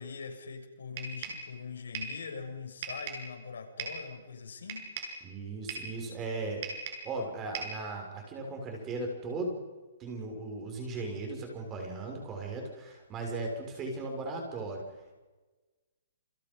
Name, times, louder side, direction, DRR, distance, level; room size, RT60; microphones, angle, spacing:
voice 1, 0.0-4.9, left 5 dB, 85° left, 3 dB, 6.9 m, -42 dB
sound 1, 1.0-1.5 1.9-2.2 2.8-3.3 3.8-4.1 4.7-5.2 5.7-6.0 6.6-7.1 7.5-7.8, right 4 dB, 35° right, 7.3 m, -38 dB
voice 2, 5.2-6.6 7.0-9.6 10.0-14.9, right 2 dB, 15° right, 2 dB, 6.3 m, -37 dB
29.5 x 27.5 x 5.6 m, 1.2 s
hypercardioid pair, 165°, 0 cm